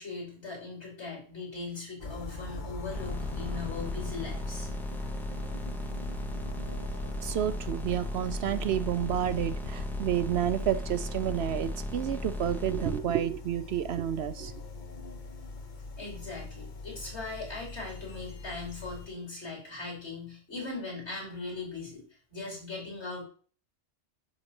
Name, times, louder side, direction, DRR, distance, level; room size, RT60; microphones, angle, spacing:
voice 1, 0.0-4.7 16.0-22.0 22.3-23.2, left 3 dB, 65° left, 4.9 m, -39 dB
sound 1, 2.0-19.1, left 4 dB, 45° left, 0.9 m, -42 dB
sound 2, 2.9-13.0, left 1 dB, ahead, 0.5 m, -36 dB
voice 2, 7.2-14.5, right 10 dB, 65° right, 0.7 m, -30 dB
9.8 x 4.1 x 6.9 m
omnidirectional pair, 1.3 m